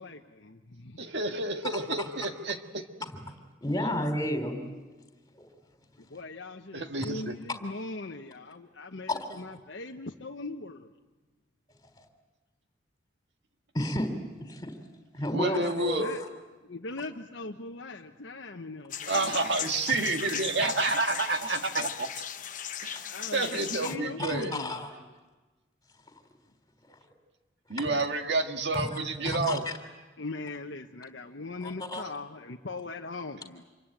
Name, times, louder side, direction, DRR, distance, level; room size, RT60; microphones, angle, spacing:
voice 1, 0.0-1.0 6.1-10.9 15.5-15.7 16.0-16.2 16.6-19.3 23.1-24.7 30.2-33.7, left 3 dB, 70° left, 2 dB, 1.1 m, -40 dB
voice 2, 1.0-2.9 6.7-7.4 15.3-16.1 19.1-22.2 22.8-24.7 27.7-29.6, right 3 dB, 60° right, 5 dB, 1.9 m, -30 dB
voice 3, 3.6-4.6 5.4-5.5 12.0-12.1 13.7-14.1 14.4-14.7 15.1-16.3 22.9-23.0 23.8-25.0 28.8-28.9 29.2-29.6 31.6-32.0, left 1 dB, 20° left, 6 dB, 3.5 m, -32 dB
sound 1, 18.9-23.9, left 9 dB, 45° left, 1.0 m, -37 dB
27.5 x 23.5 x 9.1 m, 1.2 s
head